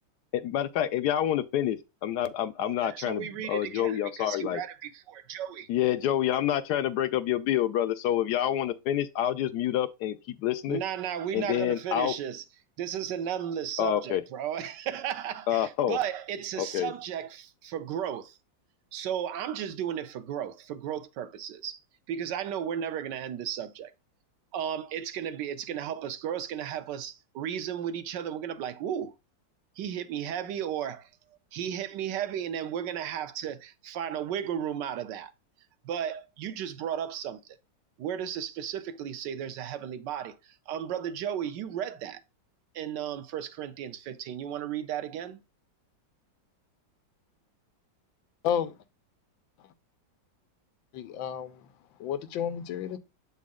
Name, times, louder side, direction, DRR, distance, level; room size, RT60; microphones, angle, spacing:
voice 1, 0.3-4.6 5.7-10.8 11.3-12.1 13.8-14.2 15.5-16.0 16.6-16.9, left 11 dB, 70° left, 1.0 m, -28 dB
voice 2, 2.6-5.7 10.7-12.4 12.8-18.4 18.9-21.8 22.1-23.9 24.5-29.1 29.8-31.1 31.5-35.3 35.8-37.4 38.0-42.2 42.7-45.4, right 9 dB, 70° right, 1.3 m, -34 dB
voice 3, 48.4-48.7 50.9-51.6 52.0-53.0, left 9 dB, 90° left, 1.5 m, -31 dB
7.5 x 4.1 x 3.6 m
omnidirectional pair, 2.0 m